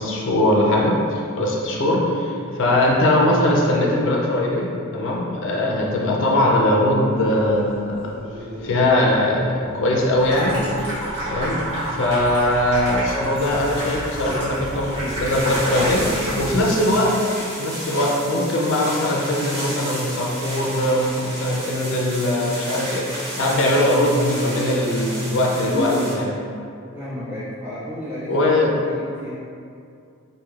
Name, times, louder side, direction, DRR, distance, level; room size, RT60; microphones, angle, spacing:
voice 1, 0.0-4.7 4.9-8.1 8.6-10.6 11.3-11.6 11.9-17.2 17.6-26.4 28.3-28.7, left 1 dB, 55° left, -2 dB, 0.4 m, -21 dB
sound 1, 7.0-12.1, right 1 dB, 60° right, 0.8 m, -39 dB
Water tap faucet / Sink (filling or washing), 10.2-16.6, right 1 dB, 90° right, 1.1 m, -29 dB
sound 2, 13.4-26.1, equal, 45° right, 1.1 m, -31 dB
voice 2, 26.9-28.6 28.9-29.3, equal, 10° right, -12 dB, 0.7 m, -33 dB
3.1 x 2.6 x 2.3 m, 2.4 s
head